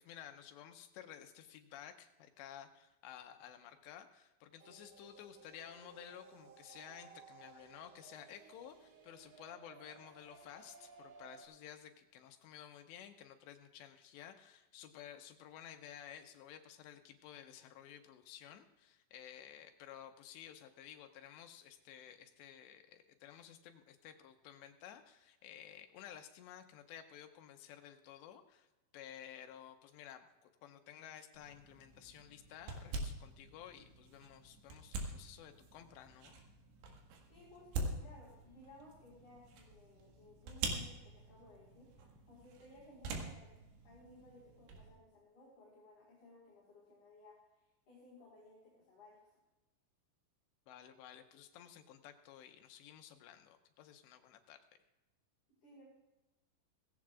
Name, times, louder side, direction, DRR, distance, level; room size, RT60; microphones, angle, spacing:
voice 1, 0.0-28.7 28.9-36.4 50.7-54.6, left 10 dB, 85° left, 6 dB, 3.1 m, -54 dB
sound 1, 4.6-11.4, right 5 dB, 60° right, 1.8 m, -59 dB
sound 2, 31.3-44.9, right 3 dB, 80° right, 3.9 m, -46 dB
voice 2, 37.3-43.5 43.8-47.4 47.9-49.3 55.6-55.9, left 1 dB, 45° left, -7 dB, 5.5 m, -59 dB
18.0 x 16.0 x 2.4 m, 1.0 s
omnidirectional pair, 5.0 m